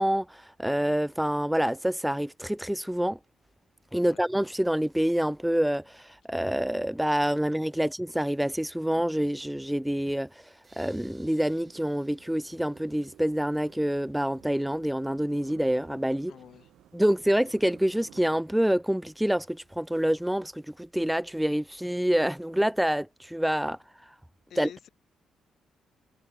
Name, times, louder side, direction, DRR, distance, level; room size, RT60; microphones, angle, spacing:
voice 1, 0.0-3.2 3.9-16.3 16.9-24.1 24.6-24.9, equal, 5° right, 0.4 m, -27 dB
sound 1, 10.6-13.6, right 3 dB, 25° right, 7.8 m, -62 dB
sound 2, 10.9-18.4, right 12 dB, 80° right, 4.3 m, -55 dB
voice 2, 16.3-16.7 24.5-24.9, left 9 dB, 60° left, 6.0 m, -47 dB
cardioid pair, 115°, 0 cm